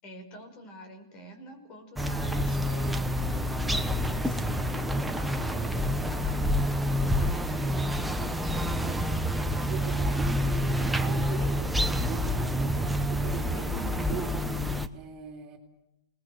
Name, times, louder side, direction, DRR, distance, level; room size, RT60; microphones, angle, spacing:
voice 1, 0.0-8.3 8.6-8.9 11.4-11.5 13.5-14.0, equal, 35° left, 6 dB, 5.9 m, -47 dB
sound 1, 2.0-14.9, equal, 5° right, 1.1 m, -28 dB
voice 2, 9.7-11.6 11.9-13.7 14.1-14.6 14.9-15.6, right 8 dB, 30° right, 2 dB, 3.7 m, -42 dB
27.0 x 20.0 x 8.0 m, 0.91 s
hypercardioid pair, 145°, 2 cm